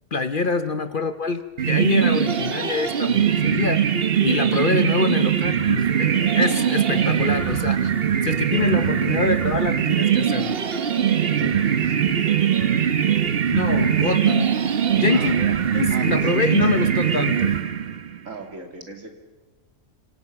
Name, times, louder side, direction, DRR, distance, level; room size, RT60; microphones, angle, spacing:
voice 1, 0.1-4.0 4.2-7.9 8.2-10.6 13.5-14.5 14.9-15.4 15.7-17.5, left 4 dB, 45° left, 10 dB, 0.9 m, -25 dB
sound 1, 1.6-18.2, right 8 dB, 50° right, 1.1 m, -21 dB
voice 2, 11.4-12.0 15.1-15.6 15.9-16.6 18.2-19.1, right 2 dB, 70° right, 3 dB, 3.0 m, -36 dB
26.5 x 25.5 x 5.9 m, 1.2 s
omnidirectional pair, 1.4 m